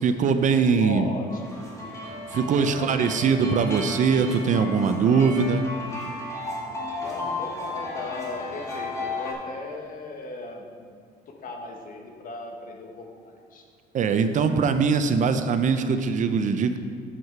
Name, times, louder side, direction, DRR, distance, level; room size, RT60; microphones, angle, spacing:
voice 1, 0.0-1.1 2.3-5.7 13.9-16.8, right 5 dB, 50° right, 9 dB, 0.6 m, -22 dB
voice 2, 0.5-1.4 2.7-3.3 7.0-11.0 11.3-13.6, left 3 dB, 55° left, 2 dB, 1.3 m, -37 dB
sound 1, 1.3-9.3, left 2 dB, 20° left, 2.0 m, -34 dB
7.4 x 6.2 x 5.8 m, 2.1 s
cardioid pair, 110°, 17 cm